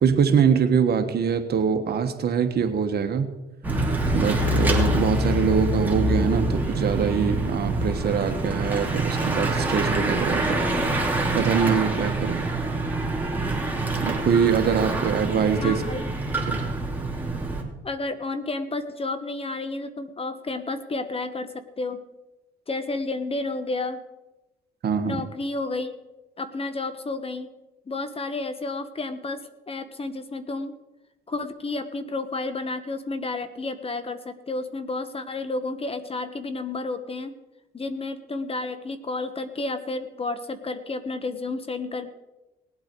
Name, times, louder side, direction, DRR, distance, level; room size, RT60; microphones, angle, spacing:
voice 1, 0.0-3.3 4.1-10.6 11.3-12.4 14.0-15.8 16.5-16.6 24.8-25.2, right 7 dB, 50° right, 7 dB, 1.5 m, -23 dB
Bicycle / Mechanisms, 3.6-17.6, right 1 dB, 10° right, 2.8 m, -25 dB
voice 2, 15.6-16.1 17.8-22.0 22.7-24.0 25.0-25.9 26.4-27.5 27.9-30.7 31.3-37.3 37.7-42.1, left 3 dB, 25° left, 11 dB, 1.2 m, -31 dB
19.0 x 8.4 x 4.6 m, 1.0 s
supercardioid pair, 85°, 21 cm